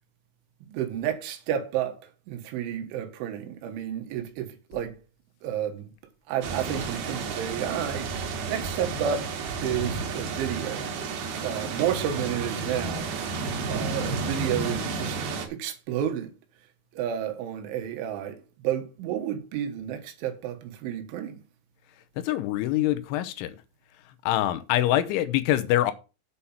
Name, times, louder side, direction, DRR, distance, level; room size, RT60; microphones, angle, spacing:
voice 1, 0.6-2.0 2.3-5.0 5.4-5.9 6.3-9.3 9.6-10.9 11.4-13.1 13.7-16.3 16.9-21.4, right 10 dB, 85° right, 3.8 m, -31 dB
sound 1, 6.4-15.5, right 4 dB, 60° right, 3.3 m, -31 dB
voice 2, 22.2-23.6 24.3-25.9, left 13 dB, 85° left, 3.3 m, -24 dB
8.3 x 5.7 x 7.1 m
omnidirectional pair, 5.4 m